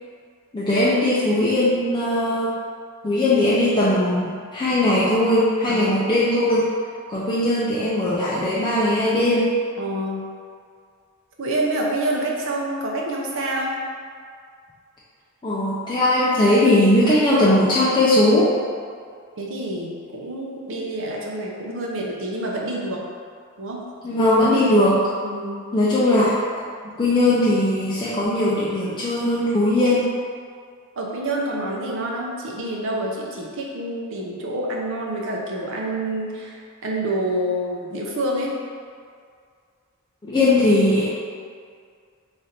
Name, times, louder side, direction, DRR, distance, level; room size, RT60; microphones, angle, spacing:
voice 1, 0.5-2.5 3.0-6.7 7.1-9.5 15.4-18.5 24.0-25.1 25.7-26.6 27.0-30.1 40.3-41.1, left 1 dB, 20° left, -9 dB, 0.4 m, -19 dB
voice 2, 5.7-6.0 9.8-10.3 11.4-13.8 19.4-23.1 23.6-23.8 25.2-25.7 31.0-38.6, right 1 dB, 65° right, -2 dB, 0.6 m, -27 dB
3.2 x 2.5 x 4.1 m, 2.1 s
head